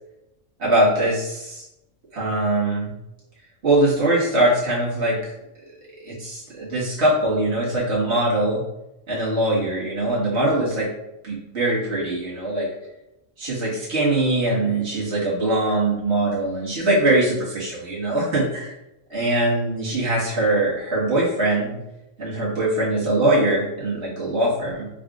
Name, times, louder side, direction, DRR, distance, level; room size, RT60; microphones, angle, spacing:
voice 1, 0.6-1.6 2.1-2.9 3.6-5.3 6.0-8.6 9.1-10.9 11.2-12.7 13.4-18.7 19.1-21.8 22.2-24.9, right 1 dB, 55° right, -6 dB, 1.7 m, -22 dB
4.9 x 3.3 x 2.4 m, 0.90 s
omnidirectional pair, 1.4 m